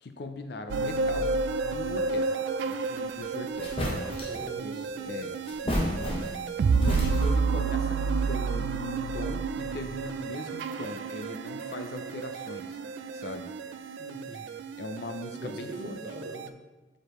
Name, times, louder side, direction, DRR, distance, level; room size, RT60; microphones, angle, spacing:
voice 1, 0.0-1.3 1.7-3.8 5.0-12.8 13.1-13.5 14.8-16.0, left 2 dB, 60° left, 7 dB, 0.5 m, -39 dB
sound 1, 0.7-16.5, right 4 dB, 70° right, 0.3 m, -31 dB
sound 2, 3.2-3.3 3.6-4.4 5.4-6.5 6.8-7.5, equal, 30° left, 1.0 m, -31 dB
voice 2, 4.3-5.1 14.0-14.5 15.3-16.5, right 1 dB, 55° right, 1 dB, 0.9 m, -41 dB
6.6 x 4.9 x 3.0 m, 1.2 s
head